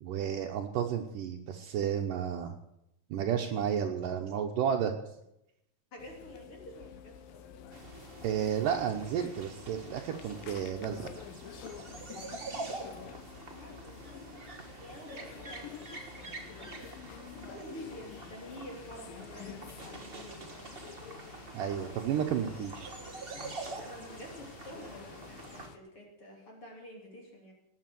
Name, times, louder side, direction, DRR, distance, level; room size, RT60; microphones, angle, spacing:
voice 1, 0.0-2.6 3.1-4.9 8.2-11.1 21.5-22.9, right 8 dB, 75° right, 3 dB, 2.5 m, -32 dB
voice 2, 5.9-7.7 13.4-16.9 17.5-20.7 23.8-27.5, equal, 40° left, 0 dB, 3.8 m, -49 dB
sound 1, 6.0-25.8, left 9 dB, 80° left, 2.7 m, -49 dB
sound 2, 7.7-25.7, right 3 dB, 45° right, 0.7 m, -46 dB
19.0 x 8.4 x 7.7 m, 0.84 s
omnidirectional pair, 4.0 m